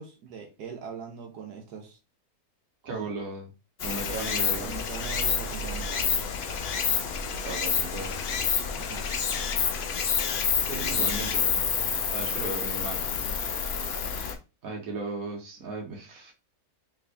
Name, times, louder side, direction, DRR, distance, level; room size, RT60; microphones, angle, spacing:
voice 1, 0.0-2.0 2.8-3.1 4.6-6.2 8.7-9.1 10.7-11.3, right 5 dB, 90° right, 2 dB, 1.4 m, -41 dB
voice 2, 2.8-3.5 3.8-4.7 7.4-8.2 10.7-11.7 12.1-13.0 14.6-16.3, right 3 dB, 65° right, 1 dB, 1.5 m, -36 dB
Stream, 3.8-14.3, left 6 dB, 55° left, 0.7 m, -28 dB
3.7 x 3.4 x 3.3 m, 0.30 s
omnidirectional pair, 1.6 m